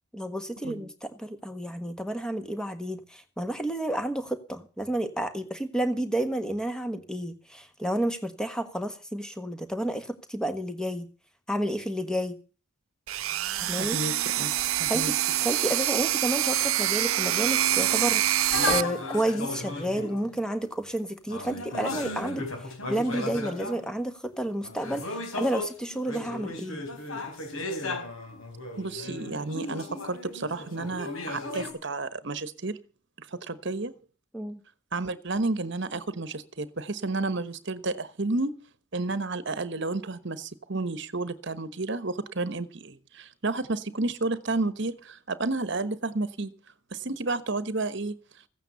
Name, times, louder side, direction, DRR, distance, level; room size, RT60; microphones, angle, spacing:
voice 1, 0.1-11.1 11.5-12.4 13.5-14.0 14.9-26.8 34.3-34.6, right 1 dB, 5° left, 8 dB, 1.5 m, -31 dB
sound 1, 13.1-18.8, right 13 dB, 80° right, 0.7 m, -26 dB
voice 2, 13.8-14.5 14.8-15.1 28.8-32.8 33.2-33.9 34.9-38.6 38.9-46.5 46.9-48.2, right 2 dB, 55° right, 14 dB, 1.2 m, -31 dB
sound 2, 18.5-20.3 21.3-23.9 24.6-31.7, left 2 dB, 80° left, 4.9 m, -35 dB
15.0 x 9.2 x 6.9 m, 0.36 s
head